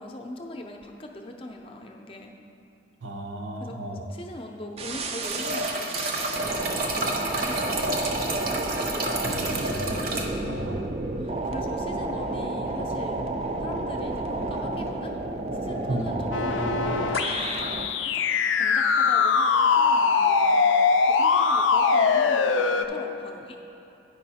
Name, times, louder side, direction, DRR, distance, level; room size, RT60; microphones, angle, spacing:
voice 1, 0.0-2.3 3.6-3.8 4.1-7.7 11.2-13.2 13.6-15.2 15.6-18.2 18.6-20.7 21.1-23.6, left 1 dB, 30° left, 2 dB, 0.5 m, -40 dB
voice 2, 3.0-4.0 9.2-10.1 10.4-10.9 15.9-16.1, right 1 dB, 80° right, 2 dB, 0.8 m, -34 dB
sound 1, 4.8-17.9, right 2 dB, 30° right, 0.4 m, -31 dB
sound 2, 5.2-10.2, right 2 dB, 50° right, 0.8 m, -29 dB
sound 3, 16.3-22.8, left 5 dB, 80° left, 0.4 m, -22 dB
9.3 x 5.4 x 4.2 m, 2.8 s
head